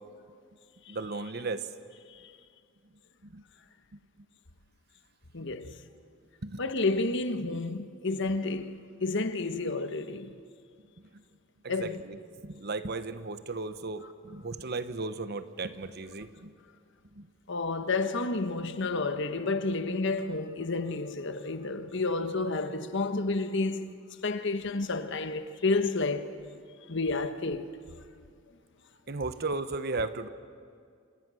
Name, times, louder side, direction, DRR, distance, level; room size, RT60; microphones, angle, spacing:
voice 1, 0.9-1.7 3.2-3.4 6.4-6.6 11.6-12.2 12.4-16.5 17.2-17.3 29.1-30.3, right 3 dB, 55° right, 1.1 m, -35 dB
voice 2, 5.3-5.8 6.6-10.3 11.7-12.0 17.5-23.9 24.2-26.3 26.9-27.7, left 3 dB, 60° left, 1.3 m, -30 dB
28.0 x 28.0 x 6.4 m
head